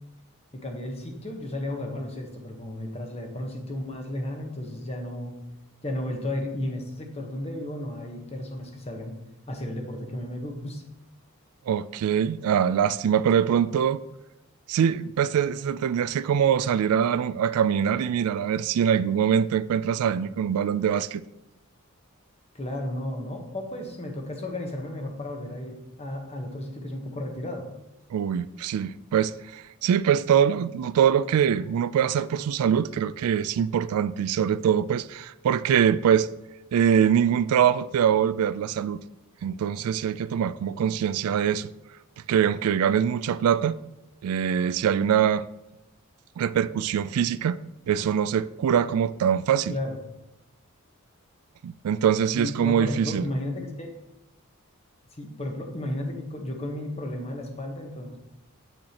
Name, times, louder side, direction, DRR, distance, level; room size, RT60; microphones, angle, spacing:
voice 1, 0.5-5.4 5.8-9.1 9.5-10.8 22.5-27.7 49.7-50.0 52.4-53.9 55.2-58.2, left 1 dB, 30° left, 1.1 m, -33 dB
voice 2, 11.7-14.0 14.7-21.2 28.1-36.3 36.7-39.0 39.4-41.7 42.3-43.8 44.2-45.4 46.4-49.7 51.6-53.2, right 8 dB, 85° right, 0.3 m, -23 dB
8.0 x 6.2 x 2.9 m
head